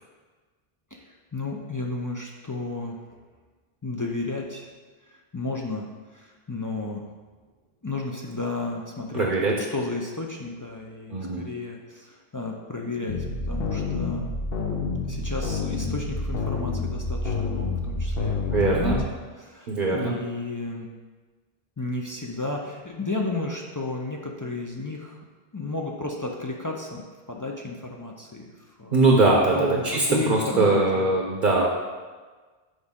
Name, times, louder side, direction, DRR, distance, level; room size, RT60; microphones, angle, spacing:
voice 1, 0.9-3.0 3.8-4.7 5.1-5.9 6.1-7.0 7.8-9.3 9.7-14.3 15.0-20.9 21.8-25.2 25.5-29.0 29.5-31.1, left 2 dB, 30° left, 0 dB, 0.3 m, -33 dB
voice 2, 9.1-9.5 11.1-11.5 18.5-19.0 19.7-20.1 28.9-31.7, right 3 dB, 55° right, -1 dB, 0.8 m, -21 dB
sound 1, 13.1-19.0, left 3 dB, 70° left, 0.9 m, -28 dB
6.4 x 4.8 x 3.6 m, 1.4 s
omnidirectional pair, 1.0 m